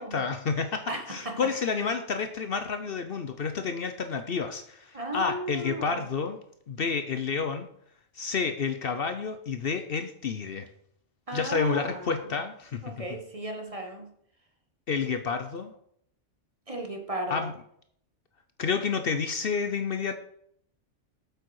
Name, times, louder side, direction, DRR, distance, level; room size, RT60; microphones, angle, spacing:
voice 1, 0.0-6.4 6.7-7.7 8.2-10.7 11.3-12.8 14.9-15.7 17.3-17.5 18.6-20.2, left 5 dB, 55° left, 8 dB, 0.8 m, -30 dB
voice 2, 0.9-1.4 4.9-6.0 11.3-12.2 12.8-14.1 16.7-17.5, right 1 dB, 30° right, 3 dB, 1.2 m, -35 dB
8.3 x 6.9 x 4.7 m, 0.68 s
omnidirectional pair, 1.2 m